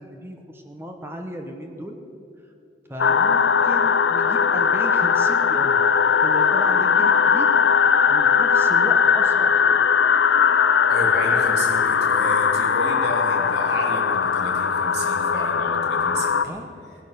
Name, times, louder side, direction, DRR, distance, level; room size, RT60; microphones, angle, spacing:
voice 1, 0.0-2.0 2.9-5.8 6.2-7.5 8.1-9.7 16.4-16.7, equal, 15° right, 4 dB, 1.1 m, -35 dB
sound 1, 3.0-16.4, left 6 dB, 85° left, 0.6 m, -19 dB
voice 2, 10.9-16.6, right 1 dB, 65° right, 0 dB, 2.8 m, -32 dB
18.0 x 11.0 x 6.7 m, 2.7 s
head